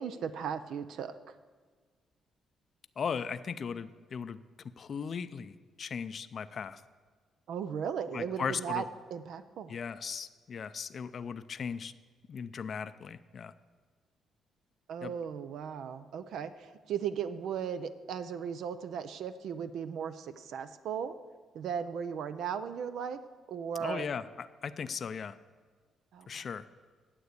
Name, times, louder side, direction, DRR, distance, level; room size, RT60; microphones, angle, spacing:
voice 1, 0.0-1.4 7.5-8.8 9.1-9.7 14.9-21.1 21.5-23.2 23.5-24.1 26.1-26.4, right 7 dB, 75° right, 11 dB, 0.5 m, -37 dB
voice 2, 3.0-4.4 4.8-6.8 8.1-8.8 9.7-11.9 12.3-13.5 15.0-15.1 23.8-25.4 26.3-26.6, left 6 dB, 50° left, 13 dB, 0.4 m, -37 dB
9.7 x 7.9 x 8.1 m, 1.5 s
cardioid pair, 90°, 0 cm